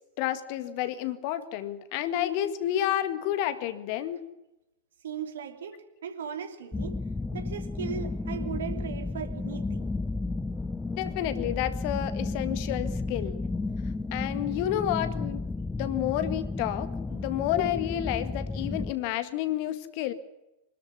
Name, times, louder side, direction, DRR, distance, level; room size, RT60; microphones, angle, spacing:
voice 1, 0.2-4.2 11.0-13.5 14.1-15.4 15.8-20.1, left 12 dB, 45° left, 11 dB, 1.9 m, -30 dB
voice 2, 5.0-7.0 7.3-9.9, right 7 dB, 65° right, 5 dB, 3.1 m, -38 dB
sound 1, 6.7-18.9, left 3 dB, 10° left, 1.0 m, -33 dB
25.5 x 13.0 x 9.9 m, 0.94 s
figure-of-eight pair, 90°, 0 cm